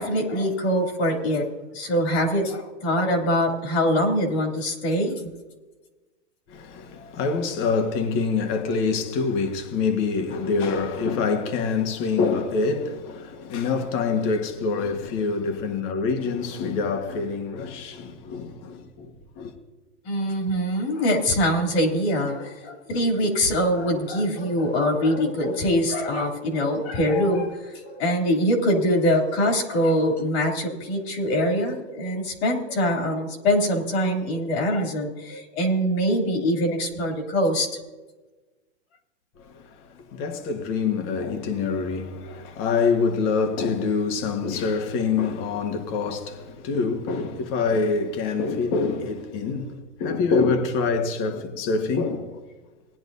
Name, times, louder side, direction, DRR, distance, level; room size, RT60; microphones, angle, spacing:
voice 1, 0.0-1.5 1.7-5.1 20.0-37.7, equal, 60° left, 3.0 m, -23 dB
voice 2, 6.5-19.5 39.4-52.4, left 4 dB, 35° left, 1.5 m, -26 dB
19.5 x 10.5 x 2.7 m
hypercardioid pair, 135°, 36 cm